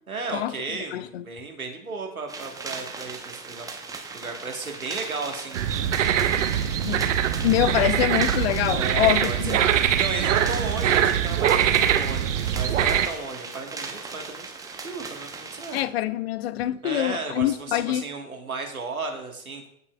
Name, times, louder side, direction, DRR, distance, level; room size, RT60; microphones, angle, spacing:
voice 1, 0.1-3.7 4.1-6.7 8.7-9.4 9.8-15.8 16.8-19.7, right 3 dB, 85° right, 1.5 m, -34 dB
voice 2, 0.9-1.3 6.8-7.1 7.4-9.7 15.7-18.1, left 13 dB, 45° left, 0.6 m, -25 dB
sound 1, 2.3-15.8, right 4 dB, 10° right, 0.8 m, -38 dB
sound 2, 5.5-13.1, right 10 dB, 60° right, 0.7 m, -23 dB
14.0 x 5.6 x 2.3 m
figure-of-eight pair, 100°, 42 cm